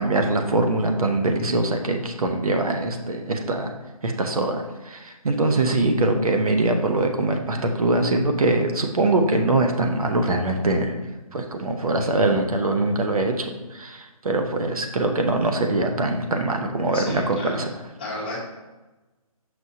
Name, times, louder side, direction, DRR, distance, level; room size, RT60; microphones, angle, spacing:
voice 1, 0.0-3.7 4.0-10.9 11.3-17.7, right 2 dB, 70° right, 4 dB, 0.9 m, -23 dB
voice 2, 16.9-17.5 18.0-18.4, left 2 dB, 15° left, -6 dB, 0.9 m, -32 dB
6.1 x 6.1 x 2.7 m, 1.1 s
hypercardioid pair, 175°, 19 cm